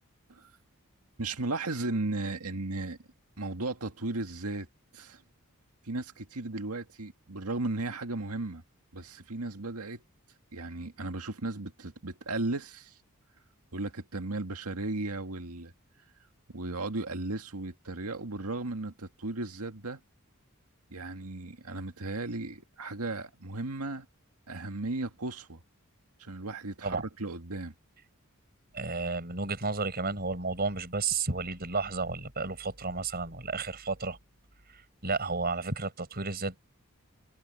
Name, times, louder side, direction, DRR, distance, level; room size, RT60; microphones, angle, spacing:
voice 1, 1.2-3.0 3.4-4.7 4.9-5.2 5.8-8.6 8.9-10.0 10.5-12.9 13.7-15.7 16.5-20.0 20.9-24.1 24.5-25.6 26.2-27.7, right 2 dB, 85° right, 2.0 m, -35 dB
voice 2, 28.7-34.2 35.0-36.6, right 3 dB, 45° right, 5.7 m, -32 dB
head